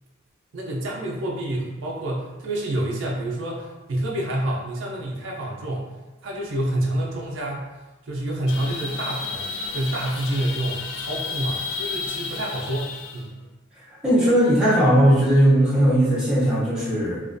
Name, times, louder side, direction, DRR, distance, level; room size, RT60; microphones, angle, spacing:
voice 1, 0.5-5.9 6.2-7.7 8.0-13.4, right 1 dB, 70° right, -3 dB, 0.4 m, -28 dB
sound 1, 8.5-13.2, left 4 dB, 70° left, 0.3 m, -32 dB
voice 2, 14.0-17.2, right 1 dB, 5° right, -9 dB, 0.6 m, -18 dB
2.4 x 2.2 x 2.5 m, 1.1 s
head